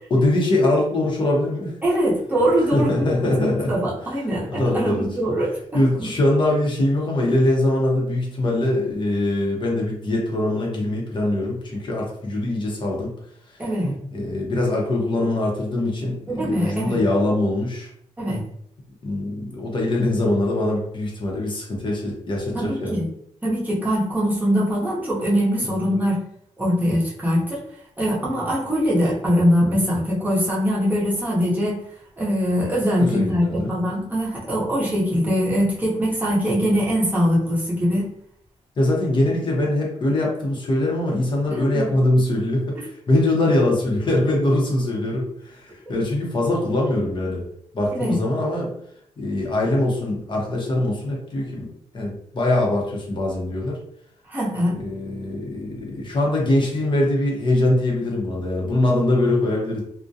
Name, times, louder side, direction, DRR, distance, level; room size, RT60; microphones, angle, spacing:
voice 1, 0.1-1.7 2.7-3.7 4.5-5.1 5.7-13.1 13.5-13.6 14.1-17.9 19.0-23.0 25.6-26.0 33.0-33.7 38.8-47.4 47.7-48.7 49.2-51.7 51.9-53.8 54.7-59.8, left 1 dB, 40° left, -2 dB, 0.7 m, -22 dB
voice 2, 1.8-5.6 6.0-6.1 13.6-14.0 16.3-17.0 18.2-18.4 22.5-23.1 23.4-26.2 26.6-27.6 28.0-31.8 32.2-38.1 41.5-41.9 47.9-48.2 54.3-54.8, equal, 15° right, -6 dB, 0.7 m, -22 dB
2.4 x 2.1 x 2.6 m, 0.68 s
wide cardioid pair, 130°, 12 cm